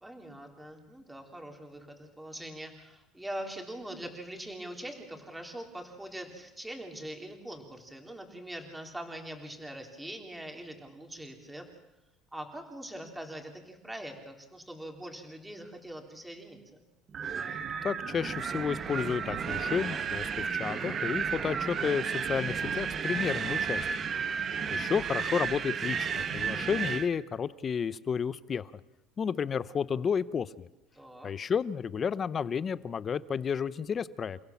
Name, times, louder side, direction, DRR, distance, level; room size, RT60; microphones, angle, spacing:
voice 1, 0.0-11.7 12.3-16.6 24.1-24.4 31.0-31.3, right 1 dB, 5° right, 3 dB, 3.5 m, -43 dB
Wind, 17.1-27.1, right 6 dB, 35° right, 1.4 m, -32 dB
voice 2, 17.8-23.8 24.7-28.7 29.2-30.7 31.2-34.4, left 6 dB, 30° left, 17 dB, 0.8 m, -31 dB
29.0 x 16.5 x 7.2 m, 0.98 s
cardioid pair, 140°, 0 cm